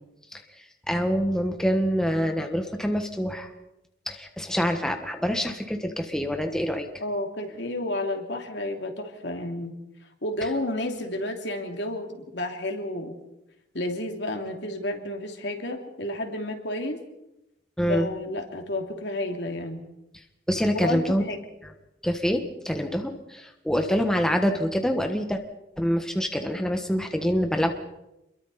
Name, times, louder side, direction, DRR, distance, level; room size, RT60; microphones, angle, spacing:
voice 1, 0.3-3.5 4.1-6.9 17.8-18.1 20.5-21.2 21.6-21.7 22.0-25.4 25.8-27.7, equal, 5° left, 4 dB, 1.4 m, -26 dB
voice 2, 7.0-9.7 10.2-13.2 13.7-17.0 17.9-19.8 20.7-21.4, left 1 dB, 65° left, 3 dB, 3.0 m, -31 dB
28.5 x 22.0 x 4.3 m, 0.91 s
head